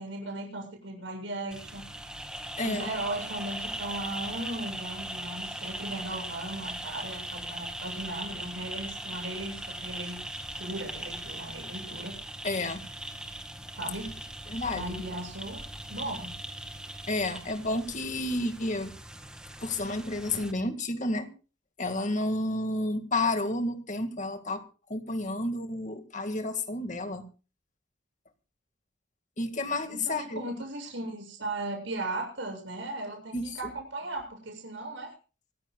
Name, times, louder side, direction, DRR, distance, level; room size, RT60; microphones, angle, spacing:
voice 1, 0.0-1.9 2.6-10.2 10.6-12.1 13.7-14.1 14.7-15.6 15.9-16.3 30.0-35.1, right 2 dB, 75° right, 2 dB, 7.4 m, -37 dB
sound 1, 1.5-20.5, right 1 dB, 5° right, 1.9 m, -40 dB
voice 2, 2.6-2.9 12.4-12.8 14.5-15.0 17.1-18.9 19.6-21.3 21.8-24.6 24.9-27.2 29.4-30.4 33.3-33.7, left 2 dB, 40° left, 7 dB, 2.0 m, -31 dB
25.5 x 15.0 x 2.4 m, 0.35 s
head